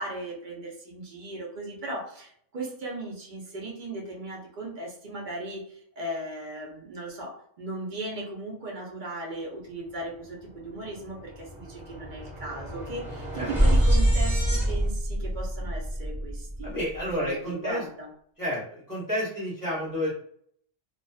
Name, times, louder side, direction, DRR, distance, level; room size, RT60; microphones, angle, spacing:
voice 1, 0.0-7.3 7.6-16.7 17.2-18.1, right 2 dB, 50° right, -2 dB, 0.6 m, -37 dB
sound 1, 10.4-10.5 10.8-17.1, equal, ahead, 0.6 m, -26 dB
voice 2, 16.6-17.8 18.4-20.1, equal, 15° left, -8 dB, 1.0 m, -30 dB
2.4 x 2.3 x 2.3 m, 0.64 s
omnidirectional pair, 1.2 m